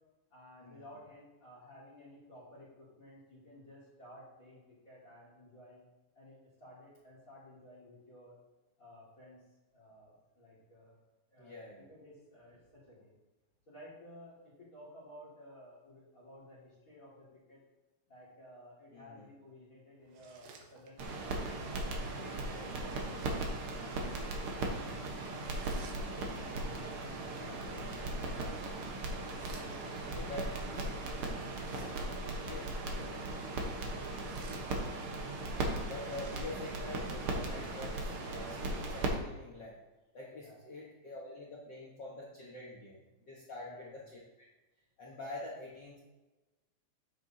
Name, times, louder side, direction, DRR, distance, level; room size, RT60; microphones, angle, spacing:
voice 1, 0.3-5.8 6.1-8.4 8.8-9.5 9.7-10.9 11.3-13.2 13.7-17.6 18.1-21.4 21.9-22.5 22.8-23.0 23.3-25.1 25.6-28.8 29.5-31.2 31.7-32.0 34.2-34.9 40.3-40.6 43.6-44.0, left 1 dB, 30° left, -5 dB, 1.9 m, -55 dB
voice 2, 11.4-11.9 18.9-19.3 22.3-23.2 30.1-30.8 32.4-32.6 32.9-33.5 35.9-39.8 40.1-43.0 43.3-44.0 45.0-46.0, left 2 dB, 75° left, -5 dB, 1.0 m, -46 dB
sound 1, 20.0-21.2 22.7-23.6 25.3-26.4 28.2-30.1 31.4-32.3 33.9-35.2 35.8-36.9, right 4 dB, 85° right, 2.7 m, -57 dB
sound 2, 21.0-39.1, right 2 dB, 70° right, 1.3 m, -38 dB
9.1 x 7.7 x 2.7 m, 1.1 s
omnidirectional pair, 3.9 m